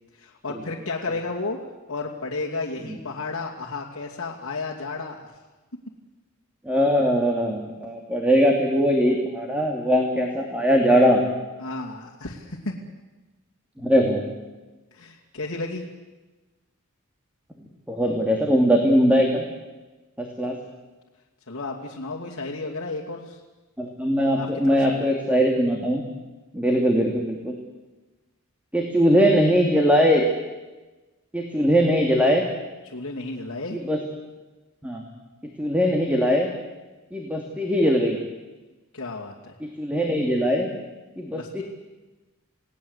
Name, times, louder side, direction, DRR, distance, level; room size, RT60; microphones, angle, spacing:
voice 1, 0.1-1.6 1.9-5.3 11.6-12.7 14.9-15.9 20.4-20.6 21.5-23.4 24.4-25.1 32.8-33.8 38.9-39.5 41.3-41.6, left 3 dB, 65° left, -3 dB, 2.6 m, -33 dB
voice 2, 6.7-11.2 13.8-14.2 17.9-19.4 20.2-20.5 23.8-26.0 26.5-27.5 28.7-30.3 31.3-32.5 33.7-34.0 34.8-35.0 35.6-36.5 37.1-38.2 39.6-40.7 41.2-41.6, equal, 5° right, 1 dB, 2.5 m, -21 dB
29.0 x 18.0 x 8.2 m, 1.2 s
head